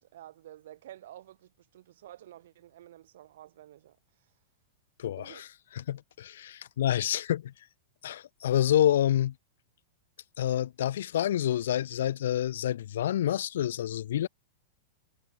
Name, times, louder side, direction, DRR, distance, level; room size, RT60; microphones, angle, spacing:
voice 1, 0.0-4.3 5.2-5.5, right 13 dB, 70° right, 7.7 m, -51 dB
voice 2, 5.0-5.5 5.8-7.5 8.0-9.3 10.4-14.3, left 11 dB, 75° left, 0.8 m, -28 dB
hypercardioid pair, 110°, 0 cm